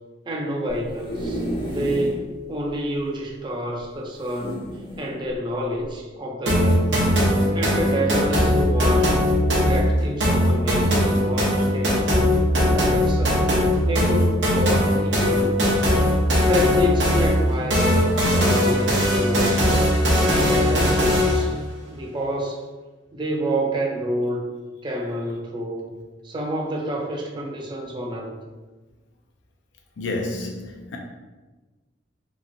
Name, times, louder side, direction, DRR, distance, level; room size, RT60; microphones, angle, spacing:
voice 1, 0.3-4.6 5.0-6.9 7.5-9.2 9.6-12.1 12.5-13.4 13.8-15.6 16.4-19.7 20.2-21.6 21.9-22.6 23.1-24.5 24.8-25.9 26.2-28.3, equal, 25° right, 0.4 m, -28 dB
sound 1, 0.7-2.2 2.7-2.8 3.0-3.1 4.2-5.1 5.8-6.0, right 1 dB, 25° left, 0.6 m, -31 dB
sound 2, 6.5-21.5, equal, 70° right, 0.8 m, -19 dB
voice 2, 30.0-31.0, left 2 dB, 85° left, 0.5 m, -29 dB
2.9 x 2.5 x 2.5 m
head